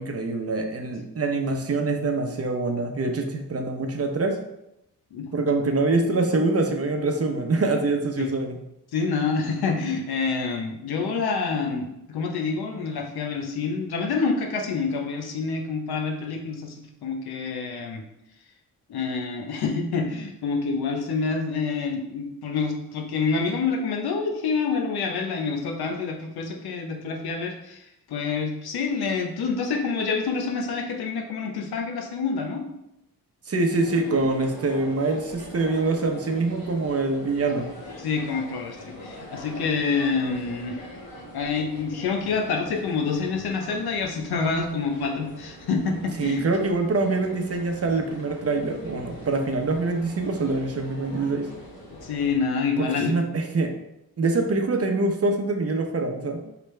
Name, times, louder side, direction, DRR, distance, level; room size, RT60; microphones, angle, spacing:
voice 1, 0.0-4.4 5.3-8.6 33.5-37.7 46.2-51.5 52.8-53.7 54.2-56.4, right 3 dB, 40° right, 4 dB, 0.8 m, -25 dB
voice 2, 8.9-18.0 18.9-32.6 38.0-40.8 41.3-46.5 52.0-53.1, left 4 dB, 85° left, 2 dB, 0.9 m, -27 dB
sound 1, 33.7-52.4, equal, 70° left, 1.6 m, -43 dB
4.9 x 3.3 x 3.2 m, 0.85 s
cardioid pair, 75°, 37 cm